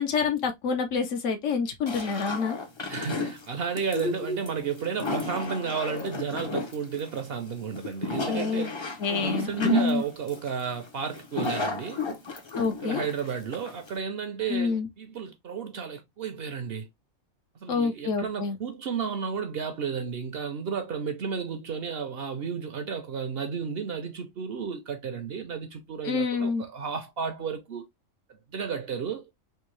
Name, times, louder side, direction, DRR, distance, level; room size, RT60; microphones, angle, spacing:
voice 1, 0.0-2.6 3.9-4.4 8.2-8.7 9.0-10.0 12.6-13.0 14.5-14.9 17.7-18.6 26.0-26.6, left 5 dB, 70° left, 1.1 m, -27 dB
sound 1, 1.9-14.0, left 1 dB, 30° left, 0.5 m, -33 dB
voice 2, 2.9-12.0 12.8-16.9 17.6-27.9 28.3-29.3, right 6 dB, 60° right, 0.7 m, -33 dB
3.5 x 2.7 x 3.1 m
omnidirectional pair, 1.4 m